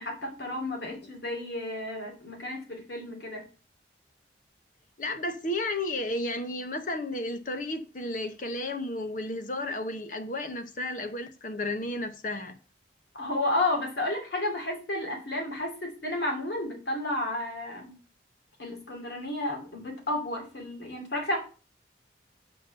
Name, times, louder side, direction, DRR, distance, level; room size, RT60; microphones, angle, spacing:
voice 1, 0.0-3.4 13.2-18.0 18.6-21.4, left 1 dB, 70° left, 2.8 m, -32 dB
voice 2, 5.0-12.6, left 1 dB, 45° left, 0.9 m, -33 dB
5.8 x 5.2 x 6.8 m
head